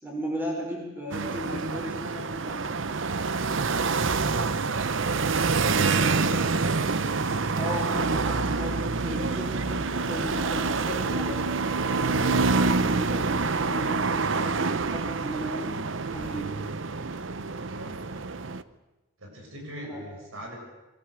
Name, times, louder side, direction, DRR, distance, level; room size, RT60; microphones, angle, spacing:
voice 1, 0.0-2.7 5.7-6.3 7.6-11.4 12.0-15.8 16.1-16.7 19.8-20.0, equal, 10° right, -1 dB, 5.0 m, -35 dB
sound 1, 1.1-18.6, right 4 dB, 65° right, 0.8 m, -27 dB
voice 2, 19.2-20.5, equal, 85° right, 1 dB, 7.3 m, -41 dB
24.0 x 18.0 x 8.1 m, 1.1 s
head